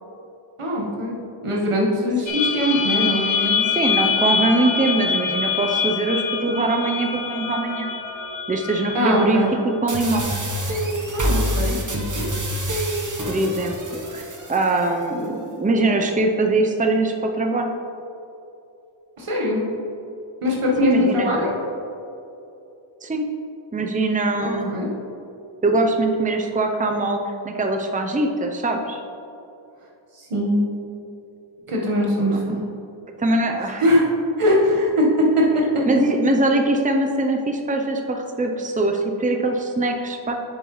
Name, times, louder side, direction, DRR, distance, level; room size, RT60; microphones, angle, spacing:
voice 1, 0.6-1.2 1.4-3.7 8.9-9.5 11.1-12.3 19.2-19.6 20.4-21.5 24.4-24.9 30.1-30.7 31.7-32.6 33.8-34.0 34.4-35.8, left 1 dB, 85° right, -2 dB, 1.4 m, -21 dB
sound 1, 2.3-9.8, left 5 dB, 65° left, 0.8 m, -25 dB
voice 2, 3.7-7.9 8.5-10.3 13.3-17.7 20.8-21.3 23.0-23.3 23.7-24.7 25.6-29.0 32.3-32.4 33.2-33.8 35.9-40.3, right 2 dB, 15° right, 3 dB, 0.6 m, -22 dB
sound 2, 9.9-14.9, right 1 dB, 35° right, 1.1 m, -26 dB
7.4 x 7.1 x 3.1 m, 2.8 s
wide cardioid pair, 65°, 49 cm